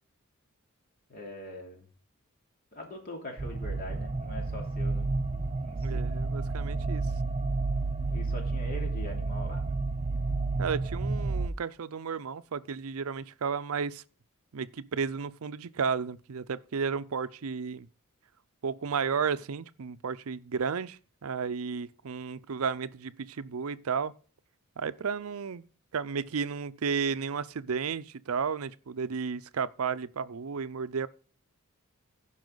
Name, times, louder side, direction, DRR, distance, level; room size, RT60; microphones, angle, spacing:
voice 1, 1.1-1.9 2.7-5.1 5.6-6.0 8.1-9.8, left 1 dB, 45° left, 2.8 m, -42 dB
sound 1, 3.4-11.5, right 3 dB, 30° right, 0.5 m, -31 dB
voice 2, 5.8-7.1 10.6-14.0 14.5-17.9 18.6-24.1 24.8-25.6 25.9-31.1, right 6 dB, 75° right, 0.5 m, -33 dB
15.5 x 5.6 x 3.9 m
head